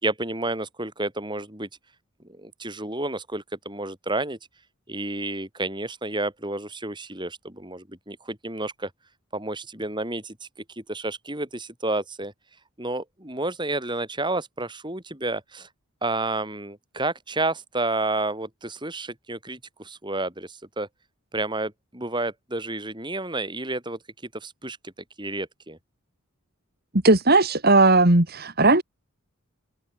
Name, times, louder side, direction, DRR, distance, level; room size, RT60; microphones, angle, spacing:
voice 1, 0.0-1.7 2.4-4.4 4.9-8.9 9.3-10.5 10.9-12.3 12.8-15.7 16.0-20.9 21.3-24.0 24.4-24.9 25.2-25.8, right 2 dB, 20° right, 5.4 m, -30 dB
voice 2, 27.0-28.8, right 2 dB, 45° right, 2.5 m, -17 dB
head